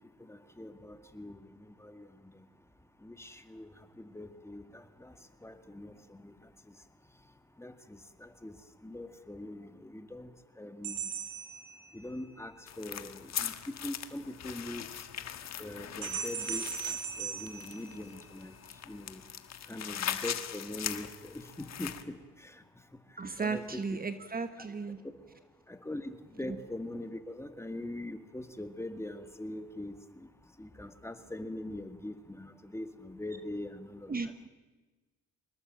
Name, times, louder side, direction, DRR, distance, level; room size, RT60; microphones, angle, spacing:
voice 1, 0.2-2.1 3.0-3.7 4.0-5.1 5.4-6.3 7.6-8.6 8.8-10.3 10.6-11.1 11.9-14.9 15.6-18.5 18.9-19.2 19.7-22.6 23.4-24.0 25.7-30.3 30.6-34.3, left 1 dB, 10° left, 8 dB, 2.0 m, -42 dB
sound 1, 10.8-12.4 16.0-18.5, right 8 dB, 85° right, 3.7 m, -39 dB
sound 2, 12.7-22.0, left 9 dB, 60° left, 1.5 m, -40 dB
voice 2, 23.2-25.0 26.5-26.6 34.1-34.5, right 4 dB, 30° right, 10 dB, 1.2 m, -35 dB
24.5 x 20.5 x 7.6 m, 1.3 s
cardioid pair, 90°, 30 cm